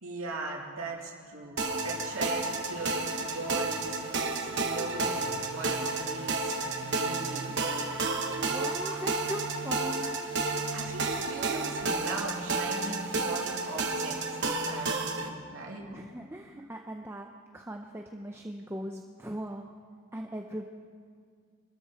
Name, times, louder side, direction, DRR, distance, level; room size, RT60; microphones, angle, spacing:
voice 1, 0.0-1.6 1.8-7.6 8.4-8.6 8.8-9.0 10.0-10.1 10.6-14.2 14.6-15.9, right 3 dB, 70° right, -2 dB, 2.7 m, -39 dB
sound 1, 1.6-15.3, right 3 dB, 50° right, 1.3 m, -31 dB
voice 2, 8.2-10.1 15.9-19.7 20.1-20.6, right 1 dB, 10° right, 3 dB, 0.6 m, -40 dB
25.5 x 13.5 x 4.3 m, 2.1 s
head